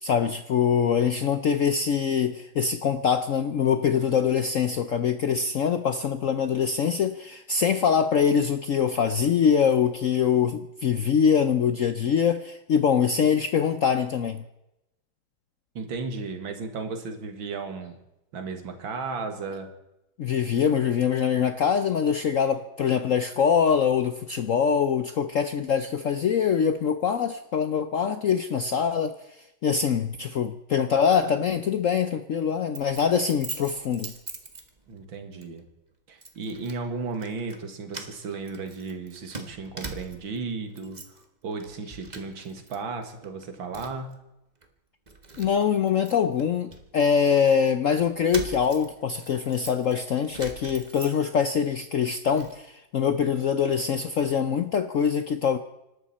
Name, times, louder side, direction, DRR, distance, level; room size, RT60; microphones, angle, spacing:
voice 1, 0.0-14.4 20.2-29.2 29.6-34.1 45.4-55.6, left 7 dB, 70° left, 0.7 m, -24 dB
voice 2, 15.7-18.0 18.3-19.7 34.9-35.7 36.1-41.0 41.4-44.1, right 4 dB, 70° right, 2.6 m, -34 dB
Keys jangling, 32.7-35.0 35.4-35.6 36.2-36.8 37.1-37.6 37.9-40.4 40.7-41.2 41.6-42.8 43.0-44.1 44.6-44.7 45.1-47.4 48.0-51.5 51.9-52.6, right 3 dB, 25° right, 1.3 m, -42 dB
26.0 x 12.5 x 4.2 m
omnidirectional pair, 2.2 m